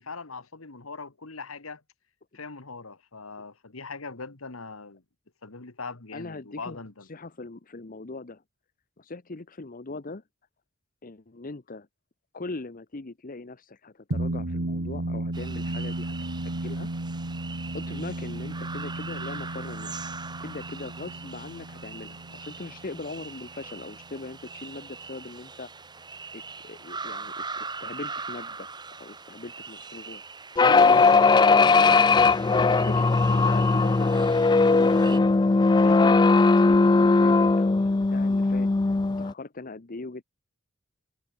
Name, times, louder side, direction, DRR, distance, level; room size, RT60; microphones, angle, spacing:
voice 1, 0.0-1.8 2.3-5.0 5.4-7.1, left 4 dB, 85° left, 1.8 m, -41 dB
voice 2, 6.1-6.8 7.1-8.4 9.0-10.2 11.0-11.9 12.3-16.1 16.4-16.9 17.7-20.0 20.4-25.7 26.3-28.7 29.0-30.2 30.5-31.0 31.5-35.3 35.8-38.7 39.2-40.2, left 3 dB, 40° left, 0.9 m, -40 dB
sound 1, 14.1-24.8, right 1 dB, 75° right, 1.6 m, -34 dB
sound 2, 15.3-35.2, right 4 dB, 20° right, 3.8 m, -41 dB
sound 3, 30.6-39.3, left 3 dB, 20° left, 0.4 m, -19 dB
head